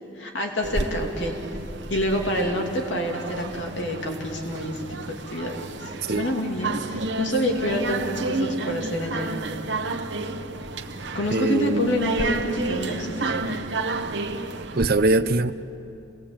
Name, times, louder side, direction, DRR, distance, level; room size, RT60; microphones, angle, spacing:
voice 1, 0.1-1.4 1.9-9.4 11.1-13.6, equal, 85° left, 1 dB, 2.9 m, -28 dB
sound 1, 0.6-14.9, right 2 dB, 75° right, 1.2 m, -31 dB
voice 2, 11.3-12.0 14.7-15.5, right 2 dB, 55° right, 11 dB, 0.7 m, -22 dB
28.0 x 19.5 x 8.8 m, 2.7 s
head